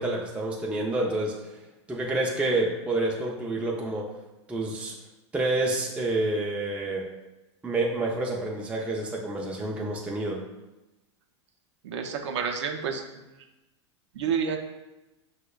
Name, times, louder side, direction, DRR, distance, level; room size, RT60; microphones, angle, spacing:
voice 1, 0.0-1.6 1.9-4.1 4.5-5.0 5.3-7.1 7.6-10.4, right 2 dB, 5° right, -2 dB, 0.4 m, -28 dB
voice 2, 11.8-13.0 14.1-14.6, right 6 dB, 75° right, 4 dB, 0.5 m, -29 dB
5.9 x 2.1 x 2.2 m, 1.0 s
hypercardioid pair, 105°, 15 cm